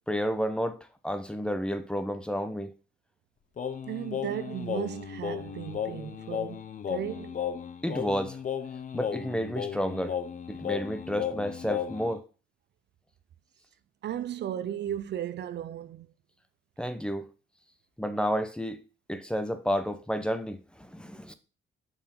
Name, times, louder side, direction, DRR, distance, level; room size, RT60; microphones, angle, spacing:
voice 1, 0.1-0.8 1.0-2.7 7.8-8.4 8.9-10.1 10.5-12.2 16.8-17.3 18.0-18.8 19.1-21.3, equal, 5° left, 0.8 m, -31 dB
Singing, 3.6-12.2, left 8 dB, 40° left, 0.8 m, -35 dB
voice 2, 3.9-7.4 14.0-16.1, right 11 dB, 60° right, 0.5 m, -35 dB
5.7 x 4.5 x 5.6 m
cardioid pair, 90°, 20 cm